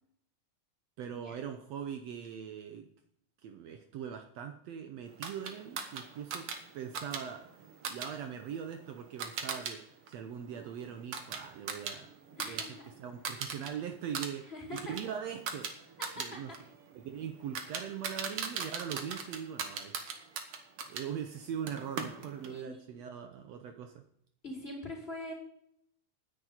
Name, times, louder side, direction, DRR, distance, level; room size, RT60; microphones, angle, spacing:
voice 1, 1.0-2.9 3.4-6.5 6.7-7.5 7.8-12.1 12.4-16.5 16.9-20.2 20.8-24.0, right 8 dB, 90° right, 6 dB, 1.4 m, -41 dB
sound 1, 5.2-9.7 10.1-12.7 13.0-13.7 14.0-21.1 21.7-22.6, right 6 dB, 55° right, 1.6 m, -40 dB
voice 2, 12.4-12.8 14.5-14.9 16.0-16.4 22.5-23.0 24.4-25.3, left 1 dB, 15° left, -3 dB, 4.0 m, -43 dB
9.8 x 7.7 x 9.0 m, 0.71 s
omnidirectional pair, 4.2 m